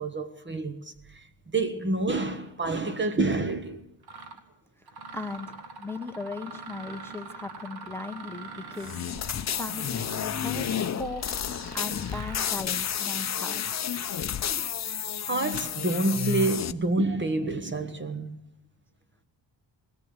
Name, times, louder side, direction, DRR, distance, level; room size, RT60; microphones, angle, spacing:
voice 1, 0.0-3.8 14.3-14.7 15.2-18.4, right 2 dB, 25° right, 1.1 m, -28 dB
Mechanisms, 3.4-3.5 4.0-4.4 4.9-12.7, right 3 dB, 60° right, 1.8 m, -44 dB
voice 2, 4.8-13.8, left 2 dB, 5° left, 0.9 m, -38 dB
sound 1, 8.8-16.7, left 9 dB, 40° left, 0.7 m, -31 dB
20.0 x 17.5 x 8.1 m
wide cardioid pair, 175°, 44 cm